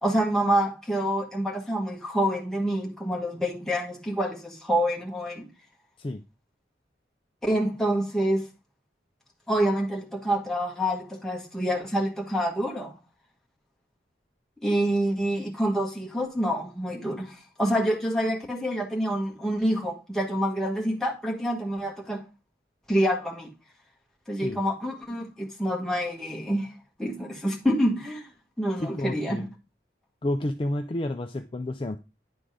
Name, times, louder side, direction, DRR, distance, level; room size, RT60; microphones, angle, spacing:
voice 1, 0.0-5.5 7.4-8.5 9.5-13.0 14.6-22.2 22.9-23.5 24.3-26.7 27.0-28.3 28.6-29.4, equal, 5° left, 1.3 m, -27 dB
voice 2, 28.8-29.5 30.2-32.0, left 1 dB, 30° left, 0.4 m, -30 dB
10.0 x 3.9 x 4.9 m
head